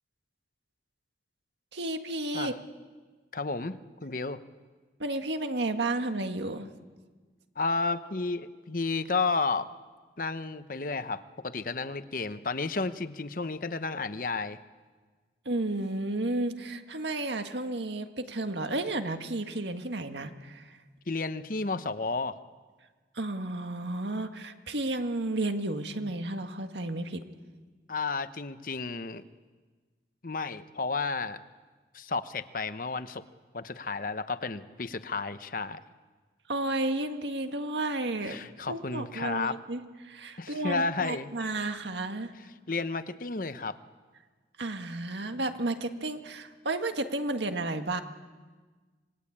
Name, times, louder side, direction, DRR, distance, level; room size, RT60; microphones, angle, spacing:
voice 1, 1.7-2.5 5.0-6.7 15.5-20.8 23.2-27.2 36.5-38.4 38.7-42.3 44.6-48.0, right 2 dB, 85° right, 6 dB, 1.8 m, -32 dB
voice 2, 3.3-4.4 7.6-9.7 10.2-14.6 21.1-22.4 27.9-29.2 30.2-31.4 31.9-33.2 33.5-35.8 38.2-39.6 40.4-41.3 42.7-43.8, left 3 dB, 50° left, 12 dB, 0.9 m, -32 dB
26.5 x 21.0 x 8.7 m, 1.4 s
head